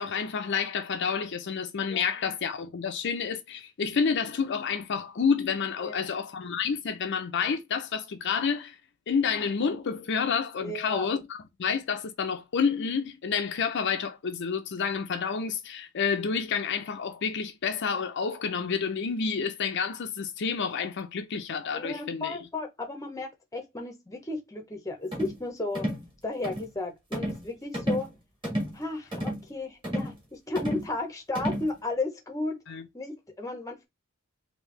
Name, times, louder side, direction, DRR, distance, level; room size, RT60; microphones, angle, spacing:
voice 1, 0.0-8.8 9.1-11.2 11.6-22.4 32.7-32.8, left 6 dB, 55° left, 0.5 m, -29 dB
voice 2, 10.6-11.1 21.7-25.9 26.2-28.1 28.7-32.6 32.9-33.8, left 2 dB, 15° left, 0.7 m, -34 dB
sound 1, 25.1-25.4 25.7-26.1 26.4-26.7 27.1-27.5 27.7-28.1 28.4-28.8 29.1-29.4 29.8-30.2 30.6-30.9 31.3-31.7, equal, 25° right, 1.5 m, -31 dB
3.3 x 2.8 x 3.1 m
head